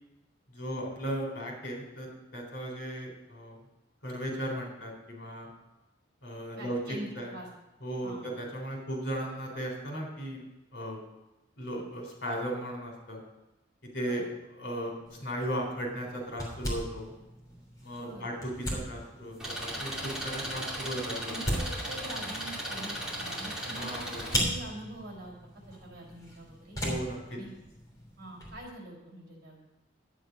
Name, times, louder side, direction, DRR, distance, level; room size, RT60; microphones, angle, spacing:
voice 1, 0.5-3.6 4.0-5.5 6.2-6.8 7.2-7.3 7.8-10.4 10.7-11.0 11.6-13.2 13.9-14.2 14.6-17.1 17.8-21.3 23.7-24.4 26.8-27.4, right 1 dB, 65° left, 0 dB, 3.8 m, -36 dB
voice 2, 6.6-7.5 8.0-8.3 14.1-14.2 18.0-18.3 21.3-25.3 25.7-26.8 27.3-27.5 28.2-29.6, right 1 dB, 50° right, -1 dB, 4.6 m, -44 dB
sound 1, 15.1-28.6, equal, 20° left, 3.2 m, -39 dB
Engine, 19.4-24.4, right 1 dB, 5° right, 2.5 m, -37 dB
11.5 x 9.2 x 5.2 m, 1.0 s
head